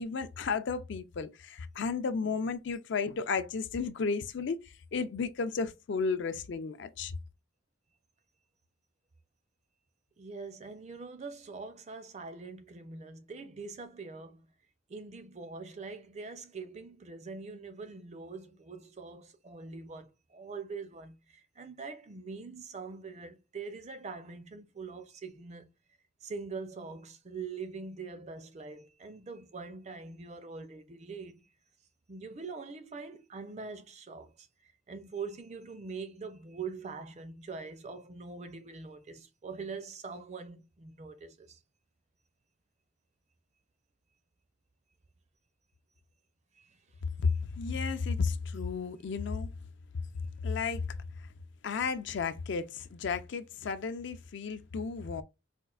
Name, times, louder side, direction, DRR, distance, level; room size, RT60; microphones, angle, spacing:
voice 1, 0.0-4.6 4.9-7.1 47.2-49.5 50.4-51.0 51.6-55.2, left 5 dB, 60° left, 0.4 m, -33 dB
voice 2, 10.2-14.4 14.9-20.1 20.3-21.1 21.6-25.7 26.2-31.4 32.1-34.5 34.9-41.6 46.6-46.7, right 4 dB, 35° right, 0.4 m, -43 dB
4.3 x 2.4 x 2.3 m
head